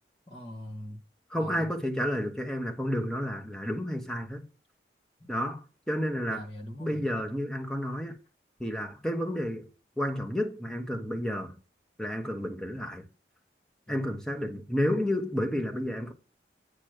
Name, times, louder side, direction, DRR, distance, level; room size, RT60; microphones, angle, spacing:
voice 1, 0.3-1.0 1.4-2.0 6.3-7.1 13.9-14.0, left 1 dB, 30° left, 1.7 m, -43 dB
voice 2, 1.3-4.4 5.3-6.5 6.8-8.2 8.6-9.7 10.0-11.6 12.0-13.1 13.9-16.1, equal, 5° left, 1.0 m, -31 dB
8.8 x 3.0 x 6.5 m
head